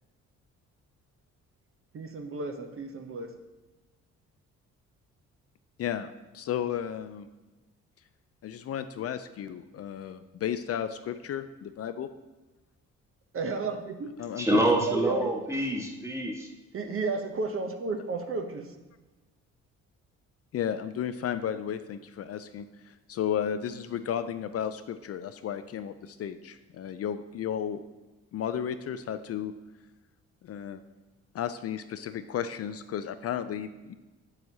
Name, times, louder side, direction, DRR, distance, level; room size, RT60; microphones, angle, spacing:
voice 1, 1.9-3.3 13.3-14.1 14.7-15.3 16.7-18.7, right 3 dB, 45° right, 6 dB, 0.8 m, -32 dB
voice 2, 6.3-7.3 8.4-12.1 14.2-14.6 20.5-27.8 28.3-29.5 30.4-30.8 31.3-33.9, left 9 dB, 55° left, 10 dB, 0.4 m, -33 dB
voice 3, 14.4-16.5, right 1 dB, 10° right, 0 dB, 1.4 m, -26 dB
7.7 x 7.4 x 2.8 m, 1.2 s
cardioid pair, 90°, 30 cm